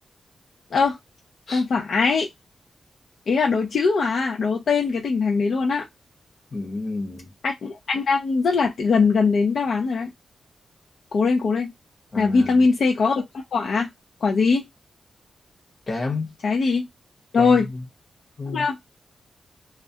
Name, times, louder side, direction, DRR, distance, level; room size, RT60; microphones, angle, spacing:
voice 1, 1.5-2.3 3.3-5.8 7.4-10.1 11.1-11.7 12.2-13.9 14.2-14.7 16.4-16.9 17.3-17.7 18.5-18.9, left 4 dB, 70° left, 0.4 m, -21 dB
voice 2, 6.5-7.3 12.1-12.7 15.9-16.4 17.3-17.8 18.4-18.7, left 3 dB, 45° left, 0.9 m, -30 dB
2.3 x 2.1 x 2.6 m
wide cardioid pair, 135°, 0 cm